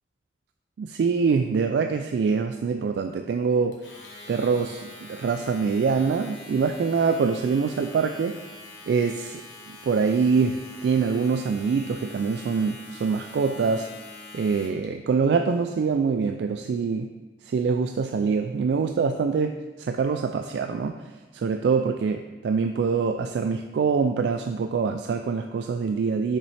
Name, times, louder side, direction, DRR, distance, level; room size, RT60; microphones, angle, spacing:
voice 1, 0.8-3.8 4.3-8.4 8.9-9.4 9.8-13.9 14.3-17.1 17.4-26.4, right 5 dB, 70° right, 6 dB, 0.3 m, -24 dB
Domestic sounds home sounds, 3.7-14.9, left 2 dB, 75° left, 1.3 m, -44 dB
6.9 x 5.3 x 3.3 m, 1.2 s
head